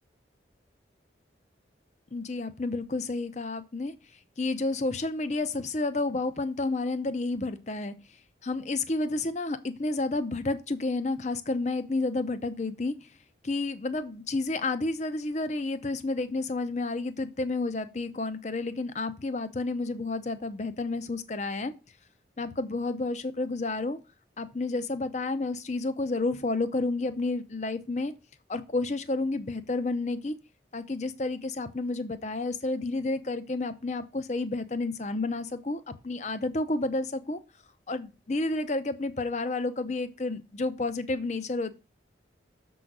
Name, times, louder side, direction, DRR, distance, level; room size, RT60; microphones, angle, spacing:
voice 1, 2.1-3.9 4.4-7.9 8.4-13.0 13.4-21.7 22.4-24.0 24.4-28.1 28.5-30.3 30.7-37.4 37.9-41.7, left 2 dB, 40° left, 11 dB, 0.7 m, -30 dB
6.9 x 3.9 x 6.1 m, 0.29 s
head